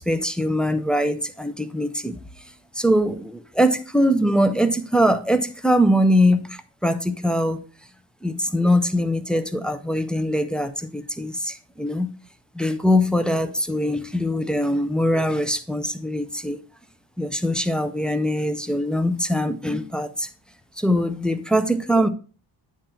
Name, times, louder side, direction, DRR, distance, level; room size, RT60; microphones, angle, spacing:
voice 1, 0.0-2.2 2.7-7.6 8.2-12.1 12.5-16.6 17.2-20.3 20.8-22.1, equal, ahead, 0.3 m, -22 dB
8.9 x 3.8 x 4.3 m
wide cardioid pair, 180°, 44 cm